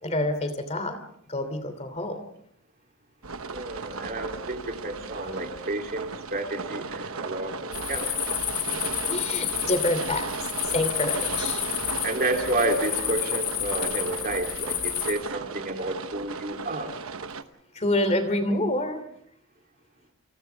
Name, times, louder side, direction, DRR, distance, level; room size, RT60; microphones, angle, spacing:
voice 1, 0.0-1.0 1.3-2.2 9.1-10.3 10.6-11.6 17.7-19.0, left 1 dB, 30° left, 9 dB, 2.9 m, -27 dB
sound 1, 3.2-17.4, right 4 dB, 70° right, 1.1 m, -35 dB
voice 2, 3.5-8.1 12.0-16.9, right 2 dB, 40° right, 3 dB, 3.1 m, -30 dB
sound 2, 7.7-15.1, left 12 dB, 75° left, 6.7 m, -30 dB
29.5 x 28.0 x 3.5 m, 0.70 s
head